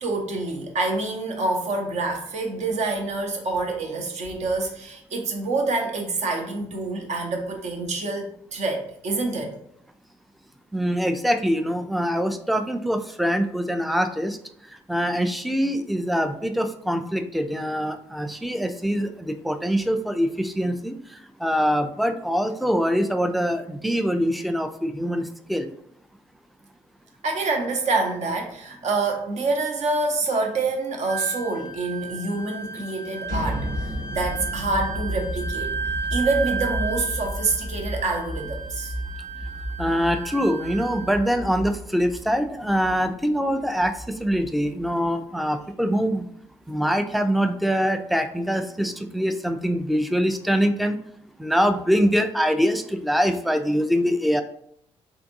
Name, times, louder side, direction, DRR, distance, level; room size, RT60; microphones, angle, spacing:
voice 1, 0.0-9.5 27.2-35.7 36.1-38.9, right 3 dB, 50° right, 3 dB, 0.8 m, -27 dB
voice 2, 10.7-14.4 14.9-25.7 39.8-46.3 46.7-51.0 51.4-54.4, equal, ahead, 8 dB, 0.4 m, -24 dB
Wind instrument woodwind instrument, 31.1-41.4, right 5 dB, 70° right, 0.4 m, -34 dB
sound 1, 33.2-45.1, equal, 90° right, 1.4 m, -33 dB
3.8 x 3.4 x 2.6 m, 0.69 s
figure-of-eight pair, 45°, 15 cm